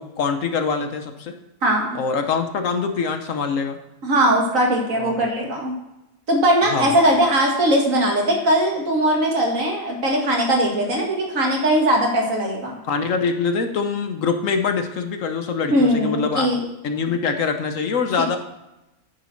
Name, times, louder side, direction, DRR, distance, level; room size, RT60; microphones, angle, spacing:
voice 1, 0.0-1.3 1.9-3.8 4.9-5.1 6.7-6.9 12.8-16.5 16.8-18.4, left 5 dB, 65° left, 7 dB, 1.1 m, -24 dB
voice 2, 1.6-2.0 4.0-5.7 6.3-12.8 15.7-16.6, right 1 dB, 60° right, -1 dB, 2.4 m, -20 dB
9.5 x 6.7 x 4.4 m, 0.93 s
omnidirectional pair, 1.6 m